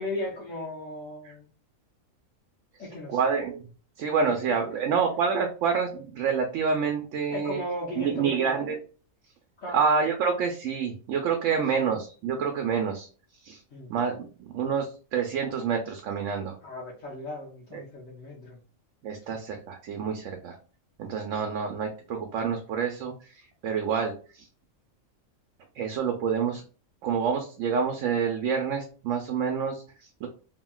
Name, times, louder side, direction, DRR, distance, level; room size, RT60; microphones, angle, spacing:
voice 1, 0.0-1.5 2.8-3.2 7.3-8.6 9.6-9.8 11.5-11.8 13.7-13.9 16.6-18.6, left 1 dB, 70° left, -6 dB, 1.2 m, -36 dB
voice 2, 3.1-3.7 4.0-7.6 8.0-8.8 9.7-13.1 13.4-13.6 13.9-16.6 17.7-17.8 19.0-20.6 21.0-23.3 23.6-24.5 25.8-26.6 27.0-30.3, right 6 dB, 75° right, 3 dB, 0.9 m, -28 dB
2.9 x 2.7 x 2.2 m, 0.36 s
omnidirectional pair, 1.4 m